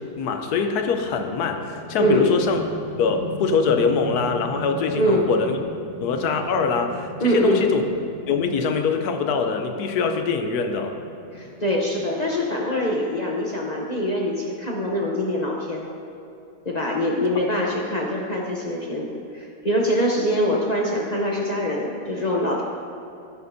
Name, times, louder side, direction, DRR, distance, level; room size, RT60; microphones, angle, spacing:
voice 1, 0.2-2.6 3.0-5.6 6.0-7.8 8.3-11.0, left 5 dB, 80° left, 6 dB, 1.2 m, -23 dB
sound 1, 0.8-13.0, right 1 dB, 65° right, 2.5 m, -39 dB
voice 2, 2.0-2.3 5.0-5.3 7.2-7.7 11.3-15.9 16.6-22.6, equal, 40° left, -2 dB, 0.6 m, -24 dB
11.5 x 10.5 x 2.6 m, 2.8 s
omnidirectional pair, 1.6 m